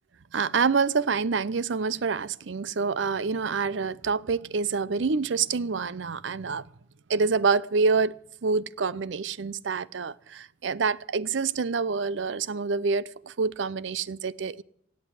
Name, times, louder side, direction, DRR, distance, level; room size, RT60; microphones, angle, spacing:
voice 1, 0.3-6.7 7.1-8.1 8.4-14.6, right 5 dB, 70° right, 0.6 m, -27 dB
17.0 x 8.3 x 8.2 m
head